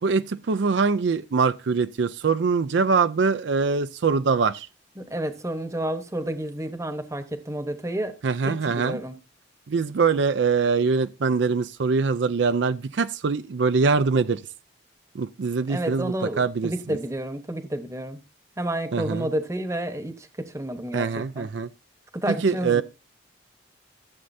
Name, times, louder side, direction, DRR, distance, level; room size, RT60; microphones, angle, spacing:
voice 1, 0.0-4.7 8.2-9.0 9.7-14.4 15.1-17.0 18.9-19.3 20.9-21.7 22.4-22.8, right 5 dB, 70° right, 0.4 m, -23 dB
voice 2, 5.0-8.2 8.4-9.2 15.7-18.2 18.6-21.5 22.1-22.8, right 1 dB, 15° right, 1.0 m, -30 dB
14.5 x 7.8 x 2.7 m
head